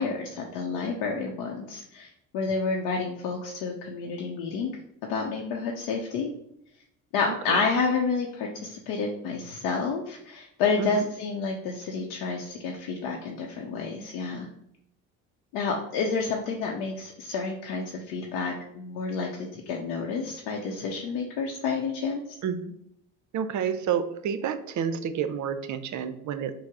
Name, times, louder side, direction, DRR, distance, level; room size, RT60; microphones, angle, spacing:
voice 1, 0.0-4.7 5.1-6.3 7.1-14.5 15.5-22.4, left 4 dB, 80° left, 0 dB, 0.6 m, -29 dB
voice 2, 7.3-7.7 10.8-11.0 22.4-22.7 23.3-26.5, right 7 dB, 50° right, 11 dB, 0.6 m, -29 dB
4.6 x 2.0 x 4.6 m, 0.75 s
supercardioid pair, 75°, 37 cm